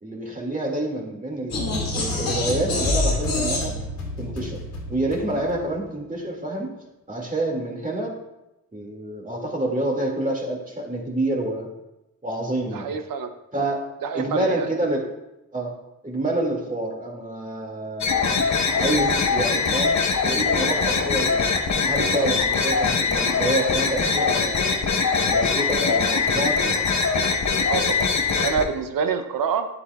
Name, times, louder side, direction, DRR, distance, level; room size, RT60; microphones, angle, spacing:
voice 1, 0.0-3.7 4.2-4.6 4.9-6.7 7.1-8.1 8.7-11.7 12.2-12.9 13.5-13.8 14.1-15.0 15.5-15.7 16.0-18.3 18.8-21.5 21.8-24.7 25.3-26.9, right 1 dB, 25° right, 0 dB, 2.2 m, -27 dB
sound 1, 1.5-5.7, left 2 dB, 85° left, 2.4 m, -26 dB
voice 2, 12.7-13.3 14.0-14.7 27.7-28.1 28.4-29.7, right 6 dB, 80° right, 8 dB, 0.8 m, -26 dB
sound 2, 18.0-28.6, left 5 dB, 55° left, 1.0 m, -22 dB
9.9 x 8.3 x 2.4 m, 0.94 s
cardioid pair, 65°, 34 cm